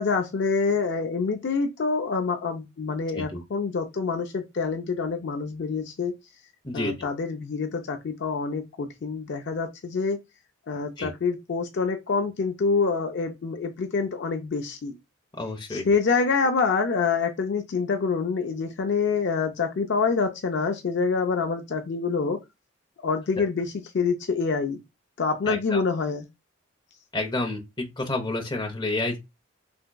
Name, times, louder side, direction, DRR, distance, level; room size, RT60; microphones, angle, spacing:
voice 1, 0.0-6.1 6.7-10.2 10.7-15.0 15.7-22.4 23.0-24.8 25.2-26.3, left 4 dB, 55° left, 0.4 m, -26 dB
voice 2, 6.6-7.1 11.0-11.1 15.4-15.8 23.4-23.5 25.5-25.8 27.1-29.2, left 2 dB, 20° left, 0.7 m, -30 dB
3.4 x 2.9 x 2.2 m
head